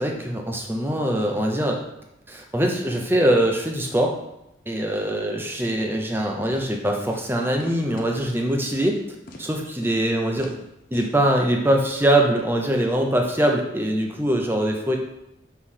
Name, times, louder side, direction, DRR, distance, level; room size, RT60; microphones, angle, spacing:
voice 1, 0.0-1.8 2.3-4.2 4.7-9.0 9.4-10.5 10.9-15.0, right 1 dB, 10° right, 1 dB, 0.7 m, -22 dB
sound 1, 6.5-6.7 7.1-7.3 7.6-8.4 8.7-9.0 9.3-9.5 9.8-10.1 10.4-10.6 10.9-11.2 11.5-11.6, left 1 dB, 45° left, 0.7 m, -42 dB
6.4 x 3.4 x 5.6 m, 0.85 s
head